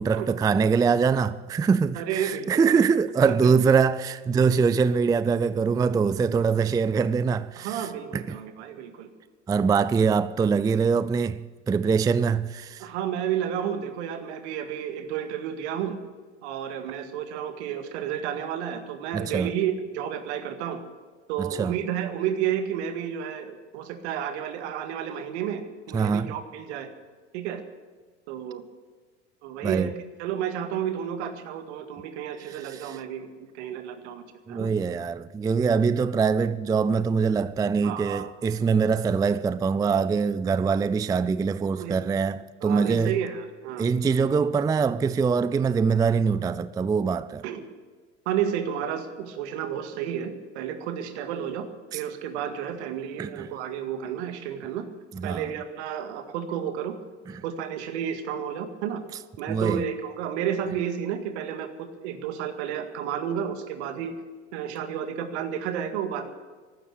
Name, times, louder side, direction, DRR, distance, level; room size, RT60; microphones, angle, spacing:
voice 1, 0.0-7.9 8.1-8.4 9.5-12.9 19.1-19.5 21.4-21.8 25.9-26.4 29.6-29.9 32.5-33.0 34.5-43.2 43.8-47.4 51.9-52.0 53.2-53.5 55.1-55.5 57.3-57.4 59.5-59.8, right 5 dB, 10° right, 0.4 m, -23 dB
voice 2, 2.0-2.8 3.2-3.5 7.6-9.1 12.8-16.0 16.4-20.8 21.3-26.9 27.3-27.6 28.3-28.6 29.4-29.9 30.2-34.7 37.8-38.3 41.8-42.0 42.6-43.9 47.4-47.7 48.3-54.9 55.2-57.0 57.4-59.0 59.4-64.2 64.5-66.3, right 9 dB, 70° right, 2.0 m, -31 dB
15.5 x 12.5 x 6.6 m
hypercardioid pair, 80°, 36 cm